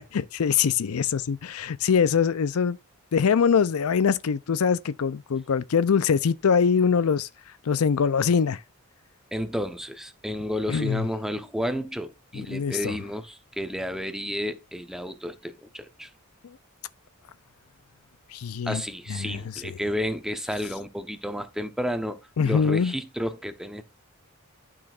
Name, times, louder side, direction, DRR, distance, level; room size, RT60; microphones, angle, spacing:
voice 1, 0.1-2.8 3.1-7.3 7.7-8.6 10.7-11.1 12.5-13.0 18.3-18.8 19.1-19.7 22.4-22.9, left 6 dB, 80° left, 0.5 m, -23 dB
voice 2, 9.3-16.1 18.6-22.2 22.4-23.8, equal, ahead, 0.9 m, -31 dB
11.5 x 6.2 x 2.4 m
head